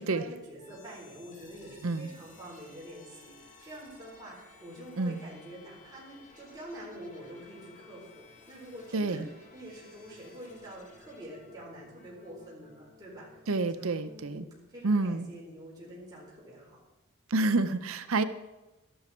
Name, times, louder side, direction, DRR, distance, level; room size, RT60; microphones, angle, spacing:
voice 1, 0.0-13.3 13.7-16.8, equal, 20° right, -6 dB, 4.7 m, -46 dB
sound 1, 0.6-14.5, left 3 dB, 35° left, 2.2 m, -57 dB
voice 2, 8.9-9.3 13.5-14.5 14.8-15.3 17.3-18.2, right 3 dB, 70° right, 12 dB, 0.7 m, -28 dB
13.0 x 12.0 x 4.4 m, 1.0 s
head